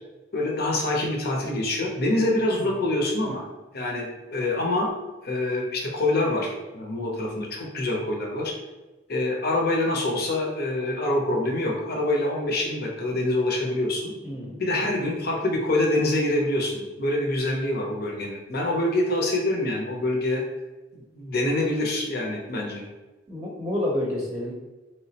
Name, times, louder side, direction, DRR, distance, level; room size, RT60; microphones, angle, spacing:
voice 1, 0.3-3.5 3.7-4.9 5.2-8.5 9.1-14.1 14.6-20.4 20.9-22.9, left 1 dB, 55° left, 0 dB, 0.8 m, -25 dB
voice 2, 14.2-14.9 23.3-24.5, left 1 dB, 20° right, -5 dB, 0.7 m, -30 dB
3.7 x 3.0 x 2.8 m, 1.1 s
head